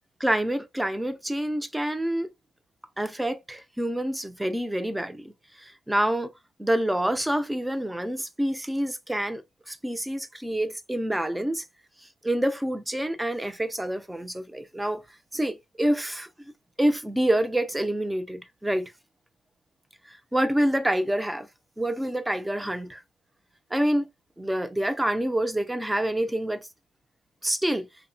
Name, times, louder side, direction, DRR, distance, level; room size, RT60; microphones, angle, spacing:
voice 1, 0.2-2.3 3.0-5.3 5.6-6.3 6.6-9.4 9.7-11.6 12.2-15.0 15.3-16.3 16.8-18.9 20.1-21.5 21.8-23.0 23.7-24.1 24.4-26.7 27.4-27.9, right 1 dB, 10° right, 0.4 m, -27 dB
2.7 x 2.1 x 2.6 m
cardioid pair, 90°, 0 cm